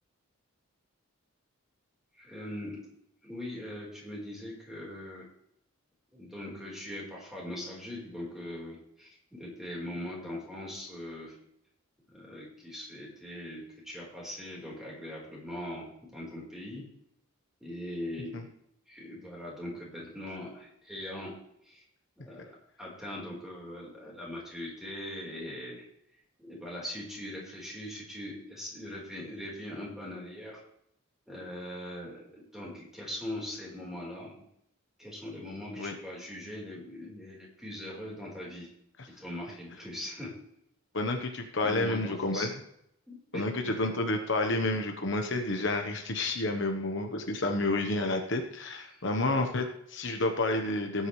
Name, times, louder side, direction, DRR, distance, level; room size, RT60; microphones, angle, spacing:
voice 1, 2.2-2.8 3.2-5.3 6.1-11.4 12.1-16.8 17.6-18.5 18.9-21.3 21.6-21.8 22.2-22.5 22.8-25.9 26.4-30.6 31.3-34.4 35.0-38.7 39.2-40.3 41.6-42.5 43.1-43.5 48.9-49.0, left 1 dB, ahead, -4 dB, 4.2 m, -41 dB
voice 2, 40.9-42.5 43.3-51.1, left 2 dB, 60° left, 4 dB, 1.1 m, -30 dB
18.5 x 8.7 x 3.2 m, 0.74 s
head